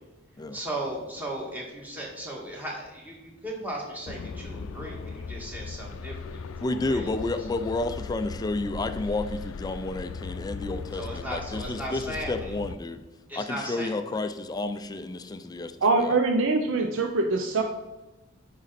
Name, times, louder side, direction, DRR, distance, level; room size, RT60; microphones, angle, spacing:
voice 1, 0.5-6.4 6.7-7.1 11.0-12.5 13.3-13.9, right 1 dB, 10° right, -3 dB, 1.8 m, -36 dB
sound 1, 4.1-12.8, left 5 dB, 90° left, 0.5 m, -38 dB
voice 2, 6.6-13.0 13.3-15.7 16.0-16.2, left 2 dB, 20° left, 9 dB, 0.3 m, -31 dB
voice 3, 15.8-17.6, right 3 dB, 75° right, 4 dB, 0.6 m, -23 dB
8.9 x 5.3 x 4.1 m, 1.1 s
head